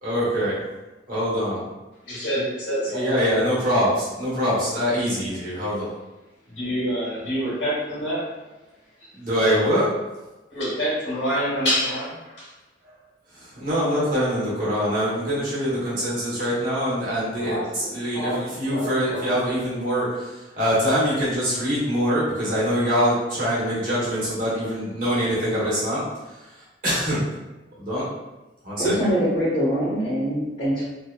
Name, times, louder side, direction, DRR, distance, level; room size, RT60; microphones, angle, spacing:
voice 1, 0.0-0.6 1.1-1.6 2.9-5.9 9.1-9.9 13.3-26.0 26.8-27.2 27.8-28.1 28.6-28.9, equal, 50° right, -8 dB, 1.0 m, -24 dB
voice 2, 2.0-3.0 6.5-8.2 9.0-9.1 10.5-12.5 17.4-17.9 18.1-19.3, equal, 75° left, -7 dB, 1.3 m, -27 dB
voice 3, 28.8-30.9, equal, 45° left, -12 dB, 0.8 m, -23 dB
2.8 x 2.2 x 2.2 m, 1.1 s
head